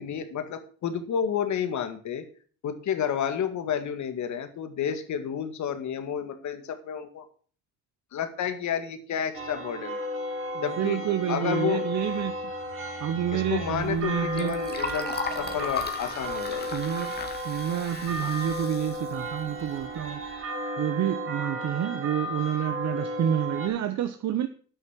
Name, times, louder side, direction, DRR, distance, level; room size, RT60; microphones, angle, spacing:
voice 1, 0.0-2.2 2.6-7.3 8.1-10.0 10.6-11.0 11.3-11.8 13.3-16.7, left 8 dB, 70° left, 2.0 m, -30 dB
sound 1, 9.3-23.7, equal, 45° right, 2.5 m, -34 dB
voice 2, 10.5-12.5 13.0-14.6 16.7-17.1 17.4-20.2 20.8-24.5, right 10 dB, 65° right, 0.9 m, -29 dB
Liquid, 13.5-20.2, left 4 dB, 35° left, 2.1 m, -38 dB
9.4 x 6.5 x 7.3 m
cardioid pair, 90°, 30 cm